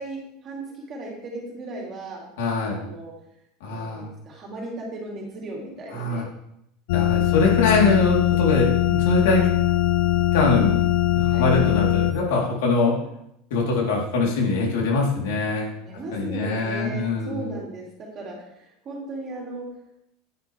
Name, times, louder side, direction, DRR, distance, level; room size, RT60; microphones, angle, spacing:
voice 1, 0.0-2.3 2.6-3.1 3.7-6.2 11.3-11.5 15.8-19.7, right 2 dB, 25° right, -2 dB, 2.6 m, -36 dB
voice 2, 2.4-2.8 3.6-4.1 5.9-6.2 6.9-9.4 10.3-10.8 11.1-13.0 13.5-15.8 16.1-17.5, left 3 dB, 90° left, -2 dB, 3.5 m, -23 dB
sound 1, 6.9-12.1, left 13 dB, 60° left, 0.5 m, -21 dB
10.5 x 9.8 x 3.4 m, 0.78 s
supercardioid pair, 175°, 0 cm